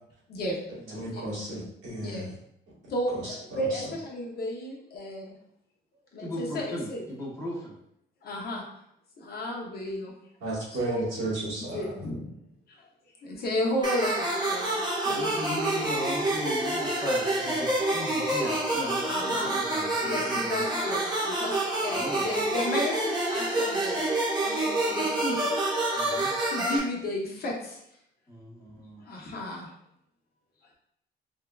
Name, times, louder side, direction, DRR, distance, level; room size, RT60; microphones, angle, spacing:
voice 1, 0.9-2.3 3.1-3.8 10.4-12.0, right 2 dB, 80° right, -7 dB, 1.4 m, -34 dB
voice 2, 2.9-5.3 6.1-7.0 8.2-8.6 9.2-10.1 10.9-11.1 11.7-12.4 12.7-12.8 13.2-15.3 19.1-19.5 20.0-24.0 24.4-25.4 26.5-27.8 29.1-29.7, left 1 dB, 50° left, -2 dB, 0.8 m, -33 dB
voice 3, 6.2-7.7 15.1-20.6 21.9-22.4 25.9-26.3 28.3-29.0, equal, 15° left, -6 dB, 1.1 m, -37 dB
sound 1, 13.8-26.8, right 2 dB, 20° right, 1.0 m, -28 dB
3.6 x 2.2 x 2.3 m, 0.75 s
cardioid pair, 90°, 20 cm